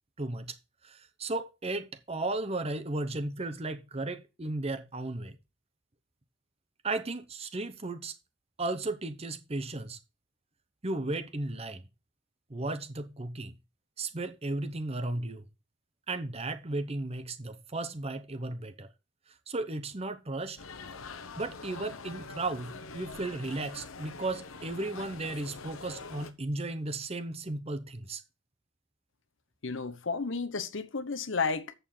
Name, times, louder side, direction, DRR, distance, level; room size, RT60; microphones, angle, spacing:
voice 1, 0.2-0.6 0.8-5.4 6.8-8.1 8.6-10.0 10.8-11.8 12.5-13.5 14.0-15.4 16.1-18.9 19.5-20.6 21.4-28.2, right 2 dB, 30° right, 0.9 m, -35 dB
sound 1, 20.6-26.3, left 4 dB, 90° left, 1.1 m, -44 dB
voice 2, 29.6-31.7, left 4 dB, 65° left, 0.9 m, -32 dB
8.0 x 6.8 x 5.5 m
head